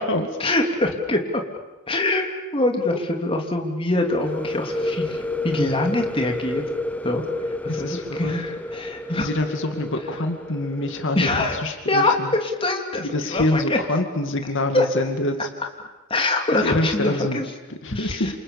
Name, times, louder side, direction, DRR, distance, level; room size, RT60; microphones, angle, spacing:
voice 1, 0.4-1.4 1.9-2.2 2.5-6.6 7.0-7.2 7.6-9.3 11.1-11.6 11.9-13.8 14.7-14.8 16.1-17.5 17.9-18.3, left 2 dB, 25° left, 2 dB, 3.1 m, -24 dB
sound 1, 4.0-11.7, left 2 dB, 5° left, 0.9 m, -30 dB
voice 2, 7.7-8.3 9.1-12.3 13.0-15.5 16.6-17.4 17.7-18.3, left 1 dB, 60° left, 5 dB, 2.3 m, -26 dB
29.0 x 27.5 x 7.1 m, 1.1 s
head